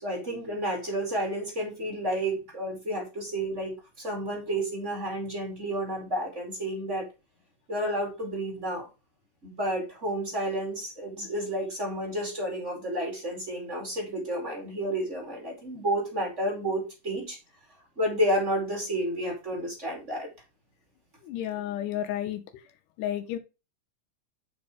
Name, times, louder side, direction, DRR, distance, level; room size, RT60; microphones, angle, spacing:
voice 1, 0.0-7.1 7.7-8.9 9.4-17.4 18.0-20.3, right 1 dB, 25° right, 2.5 m, -31 dB
voice 2, 21.2-22.4 23.0-23.4, left 11 dB, 80° left, 2.2 m, -31 dB
6.1 x 5.2 x 4.9 m
omnidirectional pair, 3.7 m